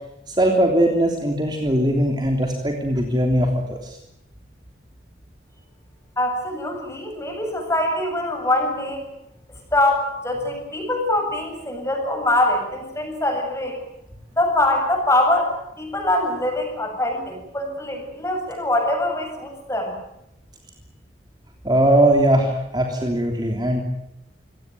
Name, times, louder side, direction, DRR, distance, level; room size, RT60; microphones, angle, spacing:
voice 1, 0.3-4.0 21.6-23.8, right 1 dB, 25° right, 2 dB, 3.2 m, -20 dB
voice 2, 6.2-9.0 9.7-13.8 14.4-15.5 15.8-20.0, left 1 dB, 15° left, 3 dB, 7.5 m, -23 dB
27.0 x 17.5 x 9.4 m, 0.85 s
head